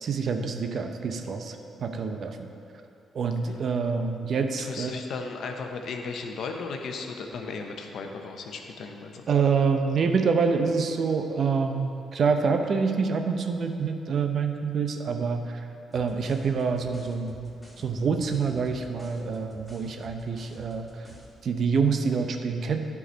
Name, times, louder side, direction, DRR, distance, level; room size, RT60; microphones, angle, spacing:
voice 1, 0.0-2.5 3.1-5.0 9.3-15.5 15.9-17.5 17.8-20.9 21.4-22.8, right 5 dB, 60° right, 5 dB, 0.7 m, -26 dB
voice 2, 4.6-9.2, left 4 dB, 70° left, 4 dB, 0.8 m, -35 dB
sound 1, 15.9-21.4, equal, 10° left, 2.2 m, -49 dB
10.0 x 4.8 x 5.5 m, 2.7 s
supercardioid pair, 60°, 0 cm